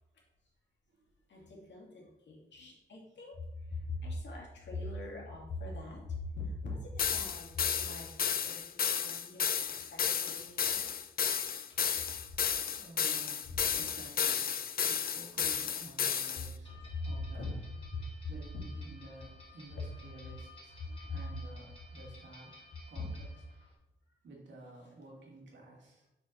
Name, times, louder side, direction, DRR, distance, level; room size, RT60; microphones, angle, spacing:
voice 1, 1.3-11.0 11.7-11.8 12.3-12.4 13.4-13.5 16.4-17.5 17.9-18.6 20.2-20.3 20.9-21.0 23.0-23.1 24.1-24.2, left 2 dB, 75° left, -2 dB, 2.6 m, -42 dB
sound 1, 7.0-16.5, left 8 dB, 55° left, 0.5 m, -32 dB
voice 2, 12.8-14.5 14.8-16.7 17.0-17.6 18.3-22.5 22.9-23.3 24.2-26.1, right 2 dB, 80° right, -2 dB, 2.6 m, -52 dB
sound 2, 16.6-23.7, left 2 dB, 30° left, 2.4 m, -56 dB
6.1 x 5.7 x 5.8 m, 0.95 s
wide cardioid pair, 115°, 18 cm